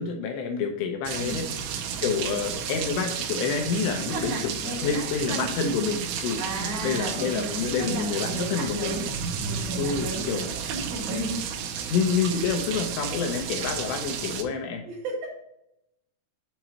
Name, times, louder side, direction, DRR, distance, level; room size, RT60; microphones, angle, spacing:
voice 1, 0.0-1.5 2.0-6.4 6.8-9.0 9.8-10.5 11.9-14.8, left 5 dB, 80° left, 4 dB, 2.7 m, -28 dB
voice 2, 1.1-1.5 3.9-5.5 6.4-9.1 9.4-11.4 14.9-15.1, right 2 dB, 65° right, -4 dB, 3.1 m, -34 dB
sound 1, 1.1-14.4, right 7 dB, 80° right, 2.5 m, -32 dB
7.4 x 3.0 x 5.7 m, 0.81 s
omnidirectional pair, 5.3 m